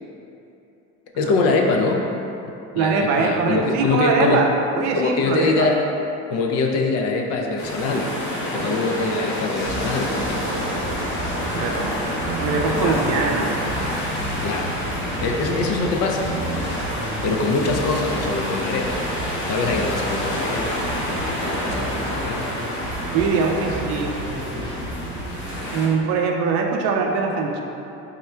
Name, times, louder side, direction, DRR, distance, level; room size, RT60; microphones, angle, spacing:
voice 1, 1.1-2.1 2.5-4.5 4.9-5.8 6.3-10.7 12.8-13.0 14.4-14.7 15.2-16.3 17.2-19.0 19.5-20.8 21.1-22.4, left 3 dB, 55° left, 2 dB, 0.4 m, -23 dB
voice 2, 2.7-5.7 11.6-12.1 12.4-13.5 23.1-24.2 25.7-27.6, right 4 dB, 65° right, 2 dB, 0.5 m, -22 dB
sound 1, 7.6-25.9, equal, 70° left, 1.1 m, -28 dB
sound 2, 9.7-25.7, right 1 dB, 15° left, 0.8 m, -33 dB
3.7 x 2.1 x 4.3 m, 2.8 s
cardioid pair, 155°, 30 cm